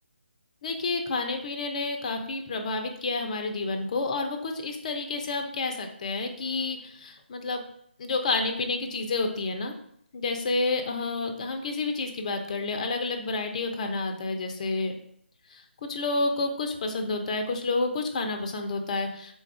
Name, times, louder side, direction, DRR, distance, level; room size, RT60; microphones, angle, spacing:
voice 1, 0.6-7.6 8.0-9.7 10.1-14.9 15.5-15.6 15.9-19.3, left 3 dB, 35° left, 4 dB, 0.6 m, -29 dB
3.9 x 2.4 x 4.6 m, 0.69 s
figure-of-eight pair, 150°, 6 cm